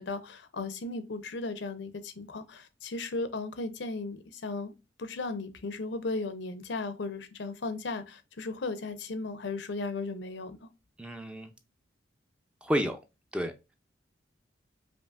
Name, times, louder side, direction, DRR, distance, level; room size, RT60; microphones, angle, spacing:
voice 1, 0.0-4.7 5.0-10.7, left 3 dB, 75° left, 0.6 m, -36 dB
voice 2, 11.0-11.5 12.6-13.0 13.3-13.7, equal, 5° right, 0.4 m, -31 dB
5.1 x 2.6 x 2.4 m
head